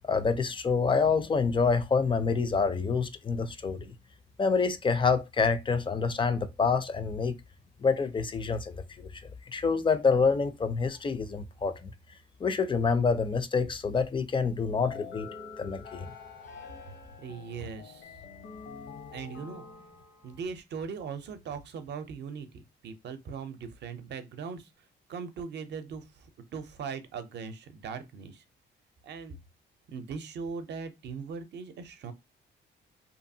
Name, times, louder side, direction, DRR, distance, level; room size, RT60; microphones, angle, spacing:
voice 1, 0.1-3.9 4.4-7.4 7.8-9.2 9.5-11.9 12.4-15.3 15.6-16.1, left 5 dB, 25° left, 0.4 m, -27 dB
sound 1, 14.8-20.5, left 5 dB, 65° left, 0.8 m, -46 dB
voice 2, 17.2-18.2 19.1-19.6 20.2-24.7 25.1-28.4 29.0-29.4 29.9-32.1, right 5 dB, 60° right, 0.6 m, -39 dB
2.7 x 2.3 x 2.7 m
cardioid pair, 90°, 20 cm